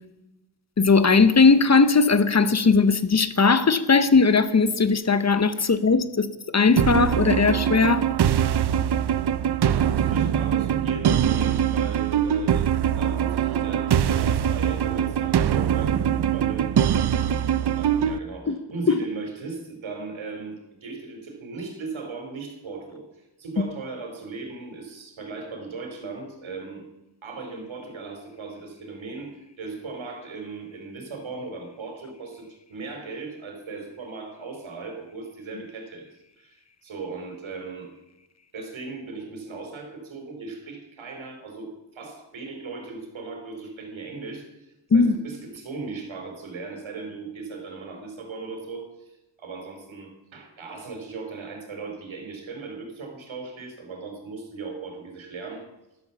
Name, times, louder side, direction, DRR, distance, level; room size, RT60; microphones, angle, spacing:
voice 1, 0.8-6.3 6.5-8.1 18.5-18.6 18.9-19.0 44.9-45.1, left 4 dB, 35° left, 0.9 m, -18 dB
sound 1, 6.8-18.2, right 9 dB, 60° right, 0.6 m, -22 dB
voice 2, 9.4-12.7 13.0-17.3 17.6-20.5 20.8-26.8 27.2-36.1 36.4-37.9 38.5-55.7, right 4 dB, 90° right, 4.3 m, -38 dB
13.5 x 13.0 x 7.1 m
wide cardioid pair, 175°, 46 cm